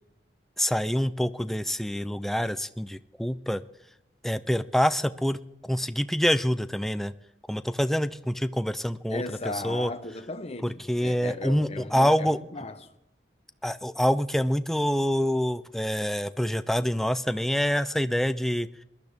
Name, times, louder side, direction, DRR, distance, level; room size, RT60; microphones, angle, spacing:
voice 1, 0.6-3.6 4.2-7.1 7.5-9.2 9.5-9.9 10.6-12.4 13.6-18.7, equal, ahead, 0.4 m, -26 dB
voice 2, 9.1-12.9, left 2 dB, 35° left, 0.9 m, -36 dB
21.0 x 12.0 x 3.6 m
head